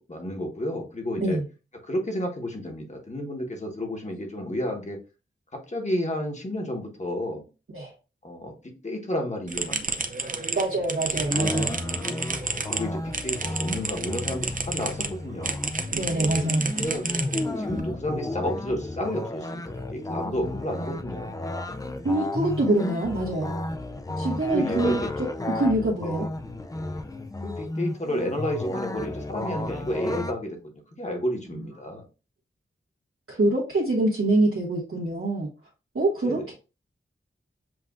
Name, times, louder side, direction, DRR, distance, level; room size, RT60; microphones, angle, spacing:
voice 1, 0.0-1.4 1.8-5.0 5.5-7.4 8.2-9.9 11.4-11.5 12.7-15.5 16.7-17.0 17.6-21.3 24.5-25.1 26.0-26.3 27.4-30.7 31.0-32.0 36.2-36.5, left 1 dB, 35° left, 2 dB, 1.2 m, -31 dB
sound 1, 9.5-15.1 15.4-17.8, right 4 dB, 40° right, 0.5 m, -31 dB
voice 2, 10.5-11.7 15.9-17.0 22.0-23.5 24.2-25.0 25.4-26.2 31.5-31.7 33.3-35.5 35.9-36.5, right 2 dB, 85° right, -6 dB, 1.3 m, -25 dB
sound 2, 11.1-30.3, left 1 dB, 15° left, 0.3 m, -33 dB
7.5 x 2.5 x 2.3 m, 0.32 s
wide cardioid pair, 85°, 21 cm